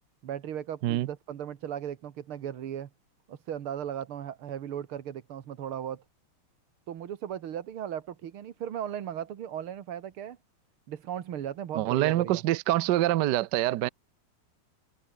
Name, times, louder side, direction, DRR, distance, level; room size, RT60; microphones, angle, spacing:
voice 1, 0.2-2.9 3.3-6.0 6.9-10.4 10.9-12.4, right 10 dB, 85° right, 2.3 m, -37 dB
voice 2, 11.7-13.9, right 15 dB, 65° right, 1.1 m, -25 dB
omnidirectional pair, 2.3 m